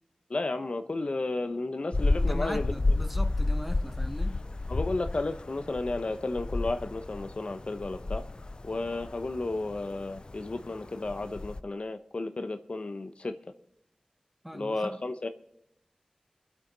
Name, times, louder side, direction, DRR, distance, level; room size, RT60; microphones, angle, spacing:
voice 1, 0.3-2.7 4.7-8.2 8.6-13.4 14.5-15.3, left 2 dB, 60° left, 0.9 m, -33 dB
sound 1, 1.9-11.6, left 2 dB, 45° left, 0.4 m, -31 dB
voice 2, 2.2-4.4 14.4-15.0, equal, 5° right, 1.0 m, -39 dB
25.0 x 8.4 x 4.0 m
cardioid pair, 45°, 2 cm